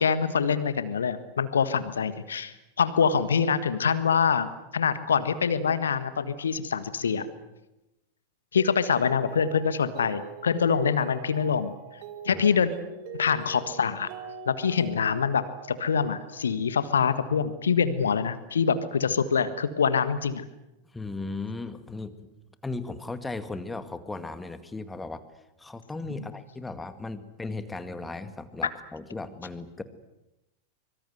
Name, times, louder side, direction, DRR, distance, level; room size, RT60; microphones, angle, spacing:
voice 1, 0.0-4.5 4.7-7.3 8.5-11.7 12.2-12.7 13.1-14.1 14.5-20.4, left 6 dB, 70° left, 13 dB, 1.6 m, -25 dB
Mallet percussion, 8.6-16.7, right 7 dB, 45° right, 2.6 m, -44 dB
voice 2, 20.9-22.2 22.6-25.2 25.6-29.8, left 3 dB, 10° left, 11 dB, 2.0 m, -36 dB
25.0 x 24.0 x 7.9 m, 0.94 s
figure-of-eight pair, 90°, 0 cm